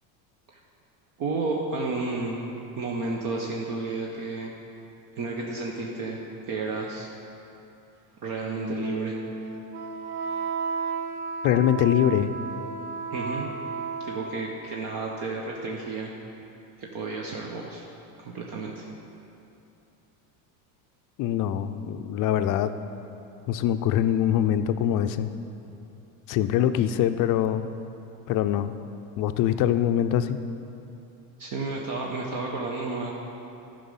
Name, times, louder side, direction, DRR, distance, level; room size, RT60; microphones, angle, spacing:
voice 1, 1.2-2.4 2.8-4.5 5.2-6.2 6.5-7.1 8.2-9.1 13.1-13.5 14.0-16.1 16.8-17.8 18.2-18.9 31.4-33.1, right 3 dB, 50° right, -1 dB, 1.1 m, -31 dB
Wind instrument woodwind instrument, 8.3-14.6, right 4 dB, 85° right, 0.9 m, -33 dB
voice 2, 11.4-12.3 21.2-22.7 23.5-25.3 26.3-27.6 28.3-28.7 29.2-30.4, left 11 dB, 50° left, 10 dB, 0.5 m, -23 dB
11.5 x 5.2 x 5.6 m, 2.8 s
supercardioid pair, 105°, 43 cm